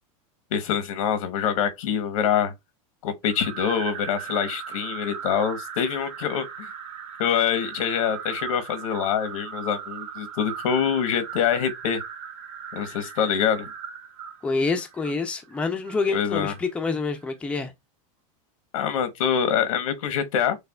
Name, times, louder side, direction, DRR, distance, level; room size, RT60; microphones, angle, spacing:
voice 1, 0.5-2.5 3.0-6.7 7.2-12.0 12.7-13.7 16.1-16.5 18.7-20.6, left 8 dB, 85° left, 1.0 m, -25 dB
sound 1, 3.2-16.6, right 7 dB, 60° right, 1.7 m, -38 dB
voice 2, 14.4-17.7, left 4 dB, 5° left, 0.5 m, -27 dB
6.5 x 2.3 x 2.3 m
supercardioid pair, 160°, 17 cm